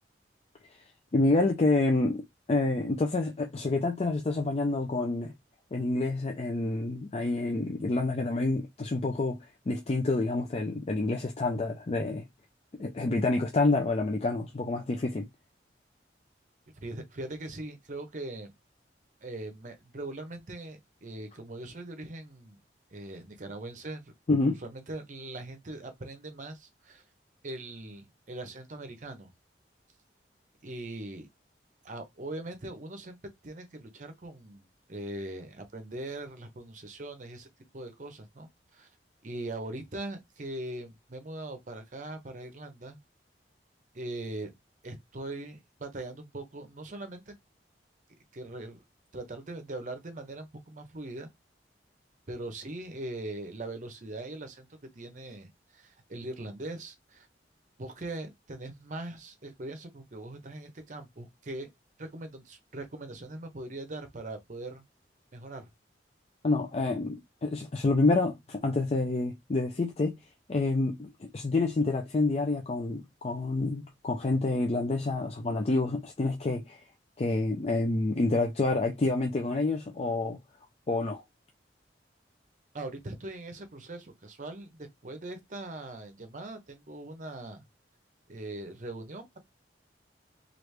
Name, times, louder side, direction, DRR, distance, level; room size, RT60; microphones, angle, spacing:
voice 1, 1.1-5.3 5.7-9.4 9.7-12.2 12.8-15.3 24.3-24.6 66.4-70.2 70.5-76.8 77.2-80.4 80.9-81.2, left 2 dB, 35° left, 0.4 m, -28 dB
voice 2, 16.8-18.5 19.2-22.6 22.9-24.0 24.4-27.0 27.4-29.3 30.6-31.3 31.8-33.2 33.4-37.5 37.7-38.9 39.2-43.0 43.9-44.5 44.8-47.3 48.3-48.8 49.1-51.3 52.3-54.7 54.9-57.3 57.8-61.7 62.0-64.8 65.3-65.7 82.7-87.6 88.3-89.4, right 2 dB, 45° right, 0.7 m, -41 dB
3.1 x 2.4 x 3.2 m
head